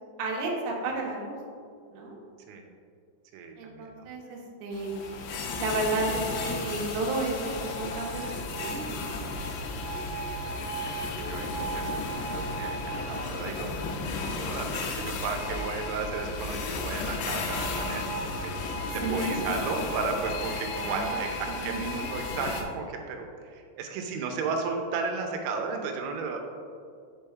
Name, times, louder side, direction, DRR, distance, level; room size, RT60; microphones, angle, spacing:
voice 1, 0.2-1.4 1.9-2.2 3.6-4.9 5.6-9.0 19.0-19.5 20.8-21.1 21.5-22.1, right 2 dB, 70° right, -2 dB, 2.4 m, -32 dB
voice 2, 3.3-4.1 10.2-13.7 14.2-26.4, right 4 dB, 90° right, 3 dB, 3.1 m, -34 dB
sound 1, 4.7-22.6, left 2 dB, 85° left, 2.5 m, -33 dB
6.7 x 5.5 x 3.4 m, 2.3 s
omnidirectional pair, 5.6 m